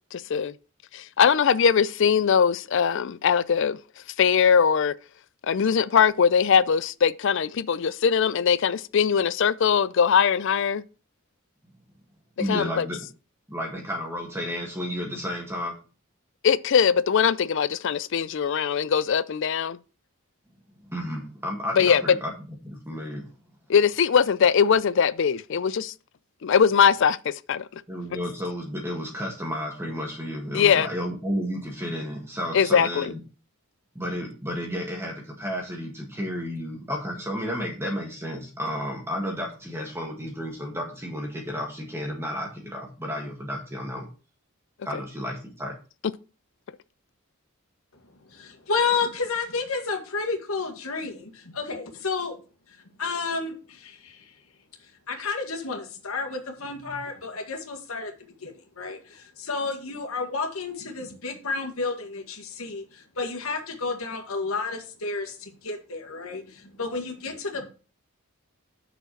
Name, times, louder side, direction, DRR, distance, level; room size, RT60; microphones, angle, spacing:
voice 1, 0.1-0.5 0.9-3.8 4.2-4.9 5.5-10.8 12.5-12.9 16.4-19.8 21.7-22.0 23.7-25.9 26.4-27.8 30.5-30.9 32.5-33.1, left 7 dB, 60° left, 0.4 m, -21 dB
voice 2, 12.4-13.0 13.5-15.8 20.9-22.3 22.6-23.2 27.9-33.2 34.0-44.1 44.8-45.7, equal, 10° right, 1.6 m, -32 dB
voice 3, 48.3-52.4 52.7-54.3 54.8-58.1 58.4-67.7, left 4 dB, 80° left, 1.8 m, -31 dB
6.5 x 5.0 x 6.4 m
head